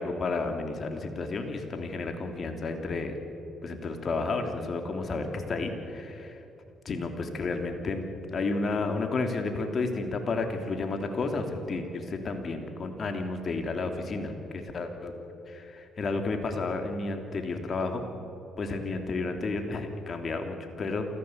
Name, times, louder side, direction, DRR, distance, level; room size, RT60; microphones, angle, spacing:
voice 1, 0.0-3.1 3.6-6.4 6.8-15.1 15.5-18.0 18.6-21.1, left 3 dB, 50° left, 5 dB, 3.2 m, -32 dB
28.0 x 15.0 x 8.1 m, 2.8 s
supercardioid pair, 65°, 0 cm